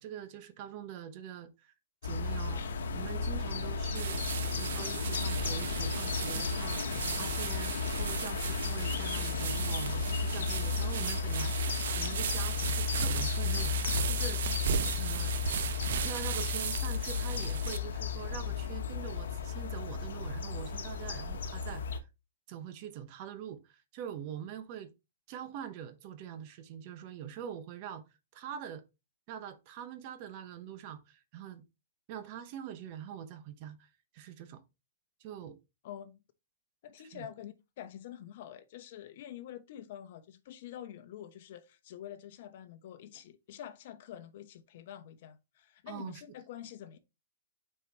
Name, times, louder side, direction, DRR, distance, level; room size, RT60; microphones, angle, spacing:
voice 1, 0.0-1.7 2.0-4.2 4.5-14.4 15.0-15.4 16.0-22.0 22.5-24.9 25.3-28.0 28.3-28.8 29.3-31.6 32.1-34.6 35.2-35.6 37.1-37.3 45.9-46.2, right 9 dB, 40° right, 1.0 m, -44 dB
sound 1, 2.0-22.0, left 5 dB, 80° left, 1.0 m, -34 dB
sound 2, 3.9-17.8, right 8 dB, 70° right, 0.7 m, -36 dB
voice 2, 35.8-36.2 36.8-47.0, left 11 dB, 55° left, 0.9 m, -47 dB
8.0 x 4.5 x 2.9 m
hypercardioid pair, 145°, 0 cm